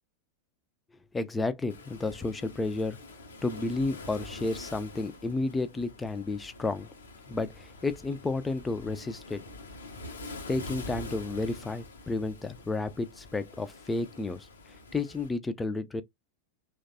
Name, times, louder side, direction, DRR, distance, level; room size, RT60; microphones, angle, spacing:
voice 1, 1.1-3.0 3.4-6.9 7.3-9.4 10.5-14.5 14.9-16.0, left 3 dB, 10° left, 0.4 m, -31 dB
Waves surf, 1.7-15.3, left 2 dB, 70° left, 0.6 m, -45 dB
3.1 x 2.2 x 2.6 m
figure-of-eight pair, 90°, 0 cm